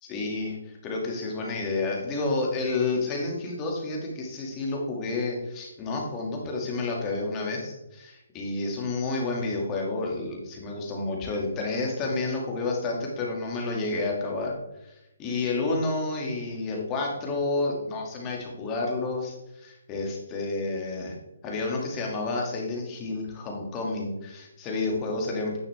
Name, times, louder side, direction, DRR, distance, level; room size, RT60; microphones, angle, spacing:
voice 1, 0.0-14.5 14.8-21.1 21.4-25.6, left 3 dB, 20° left, -1 dB, 1.9 m, -30 dB
9.5 x 5.7 x 3.3 m, 0.90 s
hypercardioid pair, 150°, 0 cm